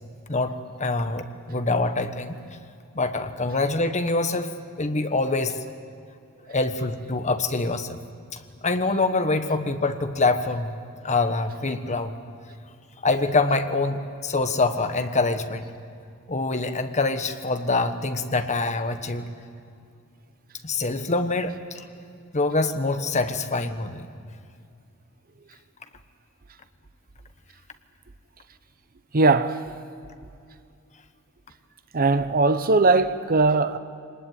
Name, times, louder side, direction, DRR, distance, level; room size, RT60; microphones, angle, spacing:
voice 1, 0.3-2.4 2.9-4.5 4.8-5.6 6.5-8.0 8.3-10.7 11.0-12.1 13.0-15.6 16.3-19.3 20.6-21.9 22.3-24.1, left 3 dB, 35° left, 1.3 m, -25 dB
voice 2, 29.1-29.6 31.9-33.8, right 3 dB, 45° right, 0.8 m, -19 dB
25.0 x 19.5 x 9.3 m
head